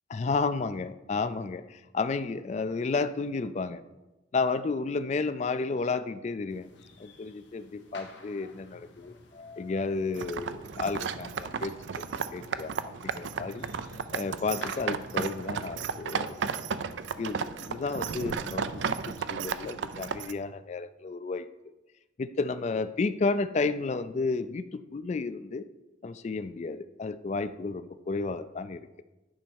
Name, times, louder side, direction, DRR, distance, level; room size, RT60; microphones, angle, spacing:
voice 1, 0.1-3.8 4.3-6.7 7.0-11.7 12.3-13.6 14.1-16.4 17.2-21.5 22.2-25.7 26.0-29.0, left 4 dB, 40° left, 13 dB, 0.3 m, -32 dB
sound 1, 6.5-17.5, left 2 dB, 80° left, 1.2 m, -51 dB
sound 2, 10.1-20.3, right 6 dB, 75° right, 0.4 m, -34 dB
10.0 x 5.2 x 4.6 m, 1.1 s
head